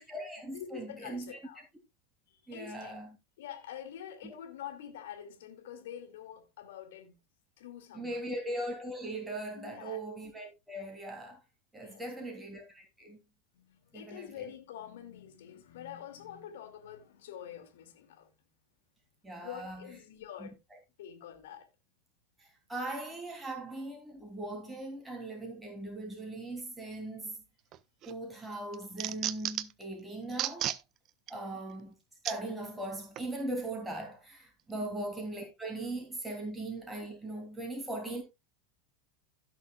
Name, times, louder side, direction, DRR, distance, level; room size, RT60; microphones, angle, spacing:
voice 1, 0.0-1.4 2.5-3.2 4.2-4.3 7.9-11.4 11.7-13.2 13.9-14.5 19.2-19.9 20.4-20.5 22.4-27.4 28.0-30.7 31.3-31.9 32.2-38.2, right 1 dB, 10° right, 2.9 m, -39 dB
voice 2, 0.5-1.6 2.3-2.9 3.4-7.2 7.6-8.4 9.6-10.0 11.8-12.3 13.5-18.3 19.4-20.6 21.0-21.7 31.3-31.6 34.8-35.0, left 10 dB, 70° left, 2.4 m, -46 dB
sound 1, 27.7-28.1 28.5-29.8 30.3-30.8 31.3-31.4 32.2-32.4 33.2-33.3, right 13 dB, 45° right, 0.6 m, -34 dB
16.5 x 6.4 x 2.3 m
hypercardioid pair, 90°, 0 cm